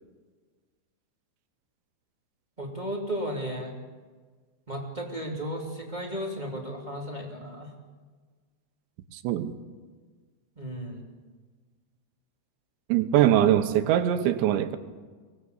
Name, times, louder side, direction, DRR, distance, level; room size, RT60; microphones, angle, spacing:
voice 1, 2.6-3.7 4.7-7.7 10.6-11.0, equal, 10° right, 0 dB, 2.3 m, -34 dB
voice 2, 9.1-9.5 12.9-14.8, right 11 dB, 80° right, 9 dB, 3.2 m, -22 dB
23.5 x 19.5 x 8.2 m, 1.4 s
omnidirectional pair, 5.4 m